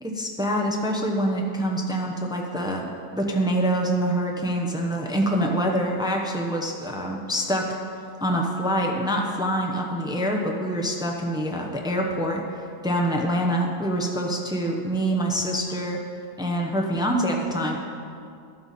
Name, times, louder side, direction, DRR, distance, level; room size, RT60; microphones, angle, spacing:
voice 1, 0.0-2.9 3.2-7.7 8.2-12.4 12.8-16.0 16.4-17.8, equal, 5° right, 1 dB, 0.5 m, -25 dB
12.0 x 7.7 x 4.2 m, 2.4 s
omnidirectional pair, 1.6 m